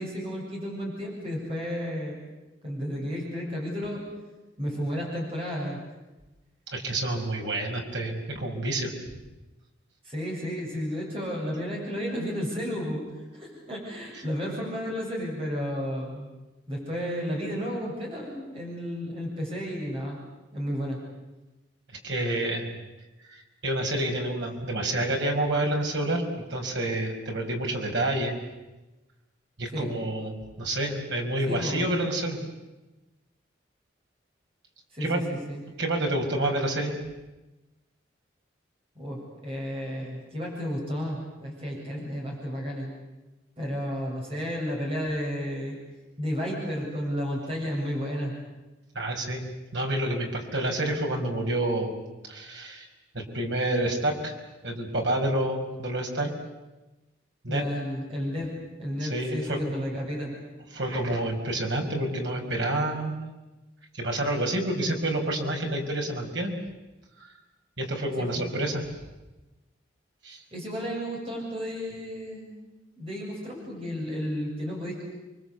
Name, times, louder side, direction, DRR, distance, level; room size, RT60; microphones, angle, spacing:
voice 1, 0.0-2.2 2.6-4.0 4.6-5.8 10.0-13.0 13.3-16.3 16.7-20.2 20.5-21.0 29.7-29.9 31.5-31.8 34.9-35.6 39.0-42.9 43.6-45.8 46.2-48.3 57.5-58.5 58.8-60.3 68.2-68.4 70.5-72.5 73.0-75.0, equal, 30° right, -2 dB, 7.9 m, -32 dB
voice 2, 6.7-8.9 22.0-22.7 23.3-26.2 26.5-28.4 29.6-32.4 35.0-35.2 35.8-37.0 48.9-49.4 49.7-51.9 52.3-52.9 53.1-54.3 54.6-56.3 57.4-57.6 59.0-59.8 60.7-63.1 63.9-66.6 67.2-67.3 67.8-68.8 70.2-70.4, right 1 dB, 70° right, 2 dB, 5.6 m, -28 dB
29.5 x 23.5 x 8.2 m, 1.1 s
head